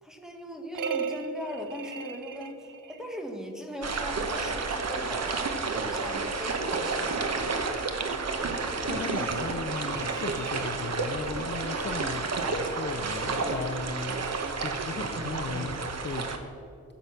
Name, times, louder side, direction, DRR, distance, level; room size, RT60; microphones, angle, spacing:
voice 1, 0.0-7.6 8.4-8.6, equal, ahead, 3 dB, 1.2 m, -40 dB
sound 1, 0.7-3.2 9.2-11.4 14.0-15.5, right 6 dB, 85° right, 0.7 m, -39 dB
sound 2, 3.8-16.4, right 4 dB, 55° right, 1.0 m, -31 dB
voice 2, 8.6-14.2 14.6-16.3, left 4 dB, 35° left, 5 dB, 0.6 m, -37 dB
15.5 x 8.1 x 5.8 m, 2.4 s
wide cardioid pair, 165°, 31 cm